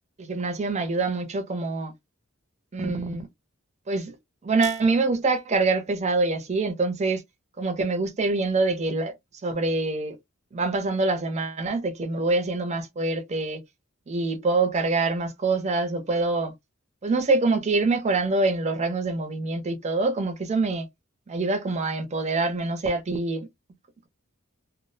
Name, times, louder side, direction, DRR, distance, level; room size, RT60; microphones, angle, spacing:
voice 1, 0.2-1.9 2.7-3.3 3.9-4.1 4.4-7.2 7.6-9.1 9.4-10.1 10.5-13.6 14.1-16.5 17.0-20.9 21.3-23.5, right 3 dB, 30° right, 0.5 m, -25 dB
2.4 x 2.0 x 2.6 m
head